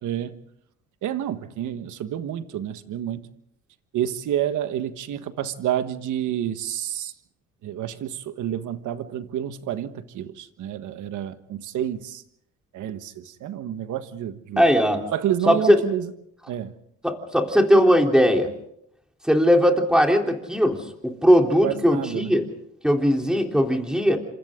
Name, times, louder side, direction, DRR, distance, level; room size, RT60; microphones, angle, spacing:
voice 1, 0.0-0.4 1.0-3.3 3.9-7.1 7.6-12.2 12.7-14.7 15.1-16.1 16.5-16.7 21.6-22.3, right 10 dB, 80° right, 1.5 m, -29 dB
voice 2, 14.6-15.0 15.5-15.8 17.0-18.5 19.3-22.5 22.8-24.2, equal, ahead, 3.6 m, -19 dB
29.0 x 26.5 x 3.8 m
cardioid pair, 90°, 30 cm